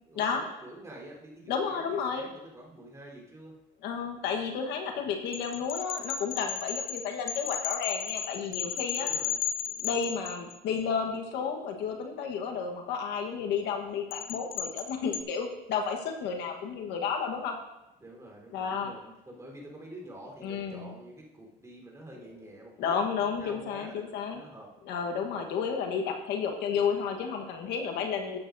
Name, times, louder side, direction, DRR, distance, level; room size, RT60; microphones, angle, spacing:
voice 1, 0.1-3.5 4.9-5.1 9.0-9.4 18.0-24.7 25.0-25.3, right 1 dB, 20° right, -2 dB, 3.8 m, -48 dB
voice 2, 1.5-2.3 3.8-9.1 9.8-17.6 18.5-18.9 20.4-20.9 22.8-24.4 24.9-28.4, left 6 dB, 85° left, 3 dB, 1.3 m, -32 dB
sound 1, 5.3-10.8 14.1-15.2, left 9 dB, 60° left, 0.8 m, -34 dB
13.0 x 9.0 x 2.7 m, 0.93 s
cardioid pair, 110°, 17 cm